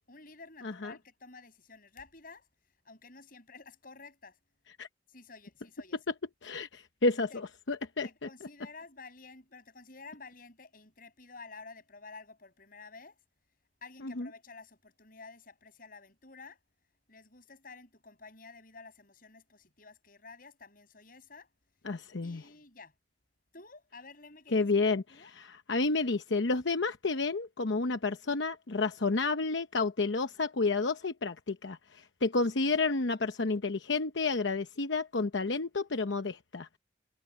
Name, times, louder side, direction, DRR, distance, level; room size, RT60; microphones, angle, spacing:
voice 1, 0.1-2.5 2.8-4.4 5.1-6.0 7.3-7.4 8.0-13.2 13.8-16.6 17.1-21.5 22.2-22.9 23.5-25.3, left 4 dB, 50° left, 6.8 m, -51 dB
voice 2, 0.6-1.0 4.8-4.9 6.4-7.3 7.7-8.1 14.0-14.3 21.8-22.4 24.5-25.0 25.4-36.8, left 3 dB, 85° left, 0.9 m, -30 dB
head